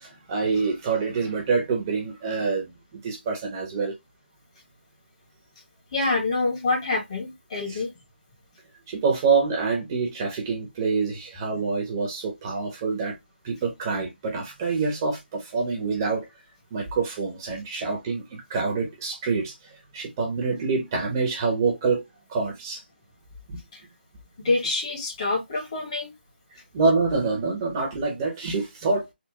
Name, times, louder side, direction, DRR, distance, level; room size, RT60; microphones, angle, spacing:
voice 1, 0.0-2.7 3.0-3.9 7.7-7.8 8.9-13.1 13.4-16.3 16.7-19.5 19.9-22.0 22.3-22.8 23.5-23.6 26.7-29.1, right 4 dB, 20° right, 0.8 m, -26 dB
voice 2, 5.9-7.9 23.7-23.8 24.4-26.1, left 3 dB, 35° left, 1.3 m, -26 dB
3.5 x 2.1 x 2.9 m
figure-of-eight pair, 160°, 6 cm